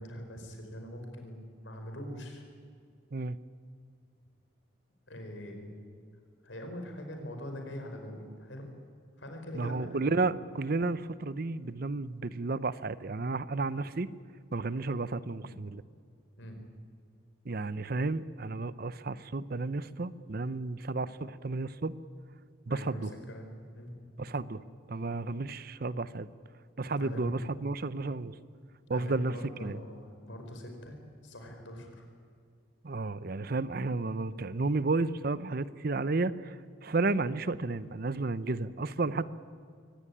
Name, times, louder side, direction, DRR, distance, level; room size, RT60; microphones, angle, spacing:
voice 1, 0.0-2.4 5.1-5.8 6.4-8.7 9.2-10.2 16.4-16.6 22.7-23.5 23.7-24.1 27.0-27.4 28.9-31.0 31.2-32.1, equal, 75° left, 4 dB, 5.0 m, -43 dB
voice 2, 9.5-14.1 14.5-15.8 17.5-22.0 22.7-23.1 24.2-24.6 24.9-26.3 26.8-28.4 28.9-29.3 29.6-29.8 32.8-36.6 36.8-39.3, right 3 dB, 50° right, 16 dB, 0.7 m, -32 dB
23.5 x 17.5 x 9.9 m, 2.2 s
head